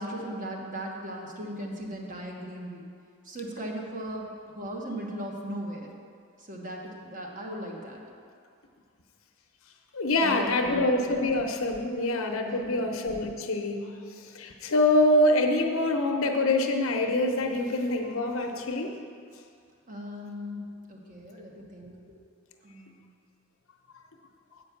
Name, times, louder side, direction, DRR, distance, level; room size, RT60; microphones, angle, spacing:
voice 1, 0.0-2.9 3.2-5.9 6.4-8.0 10.2-11.3 12.4-12.9 19.9-20.6 20.9-22.2 22.6-23.0, equal, 40° right, -1 dB, 1.3 m, -38 dB
voice 2, 9.9-13.9 14.3-19.0, left 2 dB, 75° left, 3 dB, 0.8 m, -25 dB
8.3 x 5.3 x 7.1 m, 2.3 s
head